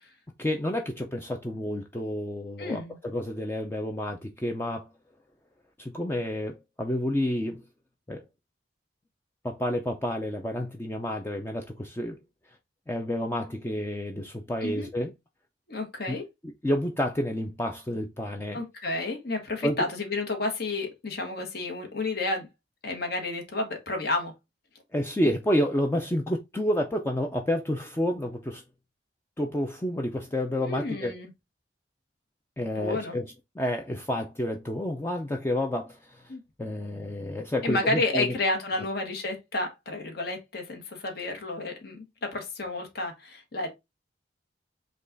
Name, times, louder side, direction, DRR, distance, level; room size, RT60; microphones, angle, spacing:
voice 1, 0.4-4.9 5.8-7.6 8.1-8.2 9.4-12.2 12.9-15.1 16.1-16.2 16.6-18.6 19.6-19.8 24.9-28.6 29.4-31.1 32.6-33.2 33.6-36.2 36.6-38.3, left 1 dB, 15° left, 0.4 m, -29 dB
voice 2, 2.6-3.0 14.6-14.9 15.7-16.2 18.5-22.5 22.8-24.3 30.5-31.3 32.7-33.1 36.3-36.4 37.6-43.7, left 2 dB, 60° left, 1.1 m, -31 dB
5.2 x 2.3 x 3.8 m
head